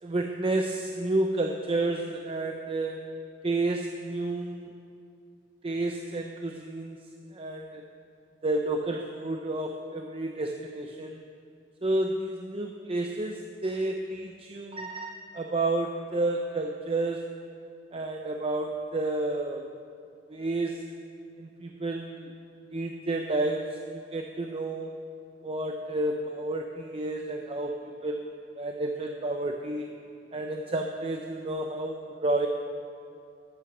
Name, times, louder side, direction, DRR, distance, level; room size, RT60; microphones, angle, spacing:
voice 1, 0.0-3.1 3.4-4.7 5.6-7.0 7.3-7.8 8.4-11.2 11.8-17.4 17.9-19.7 20.3-20.8 21.4-22.3 22.7-24.9 25.4-28.3 28.6-29.8 30.3-32.5, right 2 dB, 30° right, 3 dB, 0.6 m, -30 dB
13.5 x 9.0 x 5.9 m, 2.5 s
head